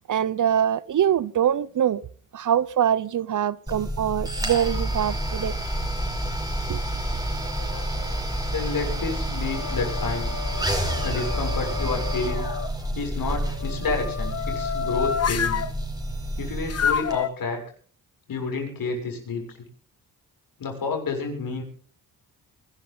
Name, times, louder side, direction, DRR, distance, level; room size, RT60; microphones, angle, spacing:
voice 1, 0.1-2.0 2.3-5.6 6.7-6.8, right 9 dB, 55° right, 0.8 m, -23 dB
sound 1, 3.7-17.2, right 1 dB, 10° right, 4.9 m, -29 dB
sound 2, 7.3-8.2 8.8-12.7 13.5-15.7 16.7-17.3, left 7 dB, 45° left, 1.1 m, -30 dB
voice 2, 8.5-10.3 11.0-12.5 12.9-15.6 16.4-17.6 18.3-19.6 20.6-21.6, left 4 dB, 70° left, 7.0 m, -30 dB
23.0 x 13.0 x 4.0 m
cardioid pair, 75°, 36 cm